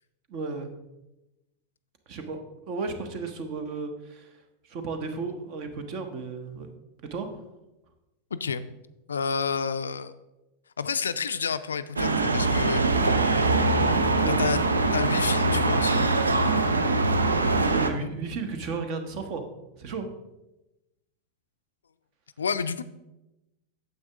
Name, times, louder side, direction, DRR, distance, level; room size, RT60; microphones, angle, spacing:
voice 1, 0.3-0.7 2.1-2.4 2.7-6.7 7.1-7.4 13.0-14.4 17.7-19.4 19.8-20.1, right 4 dB, 45° right, 7 dB, 1.1 m, -34 dB
voice 2, 8.3-8.7 9.1-10.1 10.8-12.9 14.2-14.6 14.9-16.1 22.4-22.8, left 5 dB, 70° left, 12 dB, 0.4 m, -29 dB
sound 1, 12.0-17.9, right 3 dB, 75° right, 0.6 m, -23 dB
9.4 x 7.1 x 3.5 m, 0.97 s
figure-of-eight pair, 90°, 0 cm